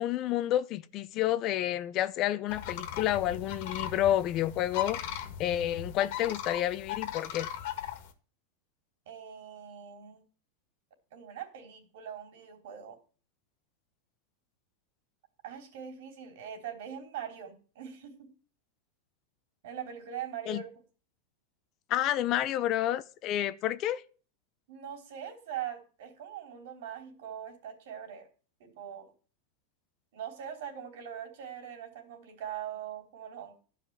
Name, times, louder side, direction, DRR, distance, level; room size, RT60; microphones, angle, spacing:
voice 1, 0.0-7.5 20.5-20.6 21.9-24.0, left 12 dB, 40° left, 0.7 m, -30 dB
sound 1, 2.5-8.1, left 10 dB, 65° left, 1.8 m, -38 dB
voice 2, 9.1-10.2 11.1-13.0 15.4-18.3 19.6-20.7 24.7-28.3 28.6-29.1 30.1-33.5, right 9 dB, 70° right, 3.5 m, -42 dB
12.0 x 5.1 x 8.7 m
supercardioid pair, 125°, 0 cm